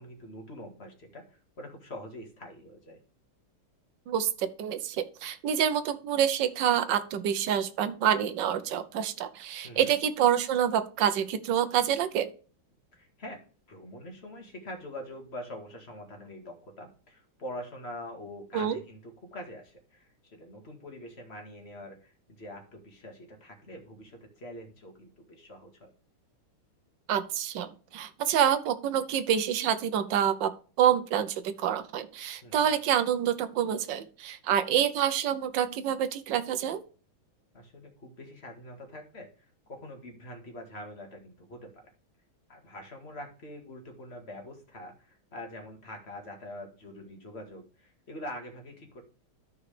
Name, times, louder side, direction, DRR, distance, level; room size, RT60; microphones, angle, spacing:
voice 1, 0.0-3.0 9.6-9.9 12.9-13.4 13.7-25.9 32.4-32.7 37.5-41.9 42.5-49.0, left 1 dB, 30° left, 2 dB, 2.0 m, -44 dB
voice 2, 4.1-12.3 18.5-18.8 27.1-30.5 30.8-36.8, right 9 dB, 65° right, 11 dB, 1.3 m, -27 dB
13.5 x 4.7 x 3.3 m, 0.39 s
omnidirectional pair, 2.3 m